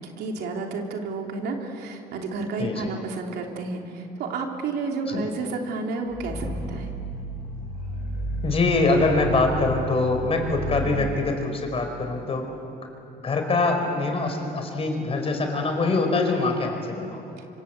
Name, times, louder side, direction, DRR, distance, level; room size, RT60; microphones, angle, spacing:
voice 1, 0.0-6.9 10.8-11.1, right 3 dB, 75° right, 2 dB, 3.4 m, -31 dB
voice 2, 2.6-2.9 5.1-5.2 8.4-12.5 13.2-17.2, left 3 dB, 35° left, 4 dB, 4.9 m, -24 dB
Growling, 6.1-11.0, right 2 dB, 55° left, 5.4 m, -32 dB
25.5 x 25.5 x 8.4 m, 2.8 s
cardioid pair, 110°, 17 cm